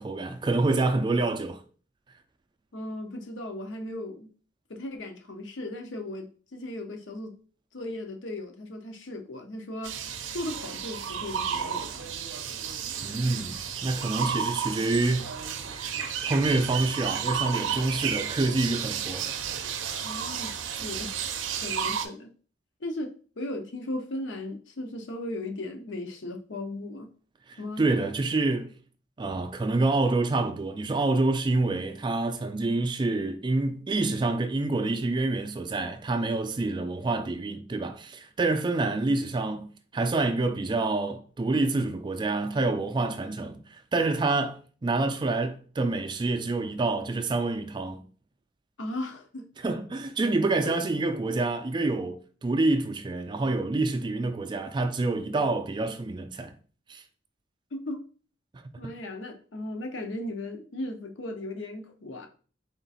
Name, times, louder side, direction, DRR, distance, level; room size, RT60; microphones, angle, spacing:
voice 1, 0.0-1.6 13.0-15.3 15.7-15.9 16.2-19.3 20.1-20.2 27.5-28.7 29.2-39.7 39.9-48.0 49.6-56.5 56.9-57.0, right 2 dB, 25° right, 0.3 m, -27 dB
voice 2, 2.7-4.3 4.7-7.4 7.7-10.0 10.3-12.1 20.0-21.1 21.6-22.3 22.8-27.1 27.6-27.9 48.8-49.5 50.6-50.7 57.7-58.0 58.8-62.3, left 1 dB, 75° left, 0.7 m, -36 dB
sound 1, 9.8-22.1, right 7 dB, 80° right, 0.5 m, -32 dB
3.7 x 2.5 x 4.0 m
head